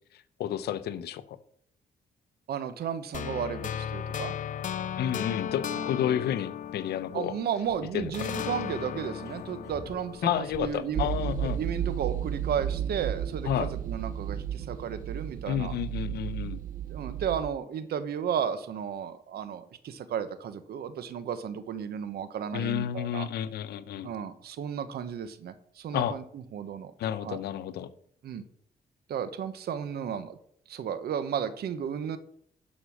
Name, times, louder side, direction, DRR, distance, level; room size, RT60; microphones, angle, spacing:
voice 1, 0.4-1.4 5.0-7.3 7.9-8.5 10.2-11.6 13.4-13.7 15.5-16.6 22.5-24.1 25.9-26.2 27.0-27.9, left 10 dB, 90° left, 14 dB, 0.8 m, -31 dB
voice 2, 2.5-4.3 5.1-5.2 5.7-5.8 7.1-11.1 11.6-15.7 16.9-23.3 24.0-26.2 26.5-26.9 27.2-27.4 28.2-28.4 29.1-30.4 30.7-32.2, right 8 dB, 75° right, 12 dB, 1.1 m, -33 dB
sound 1, 3.1-7.7 8.1-11.2, left 9 dB, 50° left, 0.5 m, -36 dB
sound 2, 6.5-12.1, left 1 dB, 20° left, 5.5 m, -50 dB
sound 3, 10.9-17.5, right 10 dB, 55° right, 0.5 m, -33 dB
11.5 x 5.5 x 6.3 m, 0.65 s
cardioid pair, 85°, 16 cm